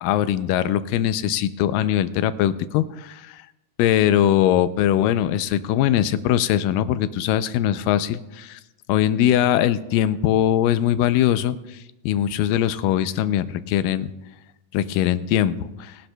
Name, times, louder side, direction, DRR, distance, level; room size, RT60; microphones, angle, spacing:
voice 1, 0.0-3.4 3.8-8.6 8.9-11.6 12.1-14.1 14.7-16.0, left 11 dB, 90° left, 13 dB, 2.3 m, -21 dB
21.5 x 11.5 x 2.3 m, 0.96 s
omnidirectional pair, 3.8 m